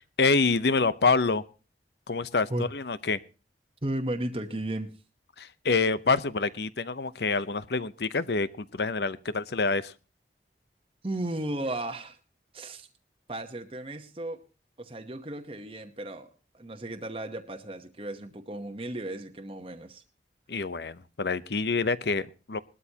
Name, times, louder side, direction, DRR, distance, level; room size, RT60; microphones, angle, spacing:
voice 1, 0.0-1.4 2.1-3.2 5.4-9.9 20.5-22.6, left 4 dB, 70° left, 15 dB, 0.7 m, -27 dB
voice 2, 3.8-4.9 11.0-12.2 12.5-12.9 13.3-14.4 14.8-16.3 16.5-20.0, right 1 dB, 30° right, 5 dB, 1.0 m, -34 dB
20.0 x 12.5 x 2.9 m, 0.33 s
head